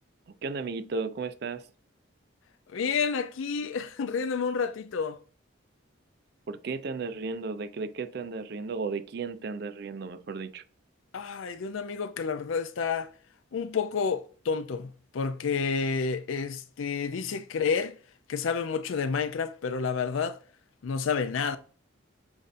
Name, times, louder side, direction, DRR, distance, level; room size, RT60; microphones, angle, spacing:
voice 1, 0.4-1.6 6.5-10.6, right 4 dB, 55° right, 0.4 m, -34 dB
voice 2, 2.7-5.2 11.1-13.1 13.5-17.9 18.3-20.4 20.8-21.6, left 5 dB, 80° left, 0.4 m, -30 dB
7.1 x 2.6 x 2.5 m
head